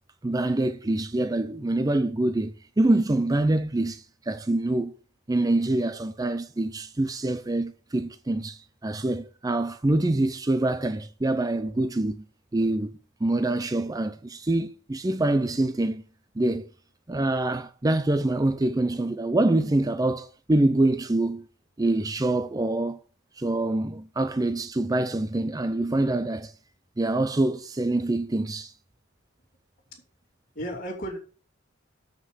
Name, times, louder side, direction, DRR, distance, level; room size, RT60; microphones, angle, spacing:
voice 1, 0.2-4.9 5.3-12.2 12.5-16.0 16.4-16.7 17.1-21.5 21.8-23.0 23.4-26.5 27.0-28.7, right 2 dB, 20° right, 0.5 m, -25 dB
voice 2, 30.5-31.2, equal, 45° left, 3.0 m, -35 dB
7.6 x 6.3 x 7.8 m
head